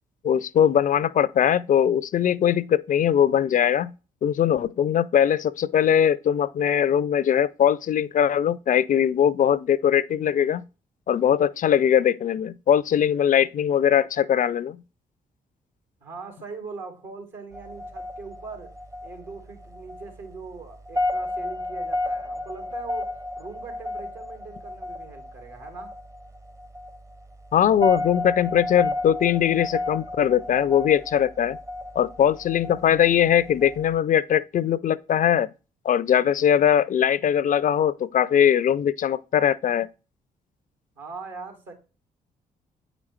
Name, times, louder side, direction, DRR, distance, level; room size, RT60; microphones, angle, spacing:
voice 1, 0.2-3.9 4.2-10.6 11.1-14.8 27.5-31.6 32.0-35.5 35.8-39.9, left 9 dB, 40° left, 0.4 m, -21 dB
voice 2, 16.0-18.7 19.0-23.1 23.4-26.0 41.0-41.7, right 4 dB, 65° right, 2.2 m, -41 dB
sound 1, 17.5-34.0, left 2 dB, 15° right, 0.7 m, -33 dB
8.4 x 5.0 x 3.2 m
hypercardioid pair, 40°, 20 cm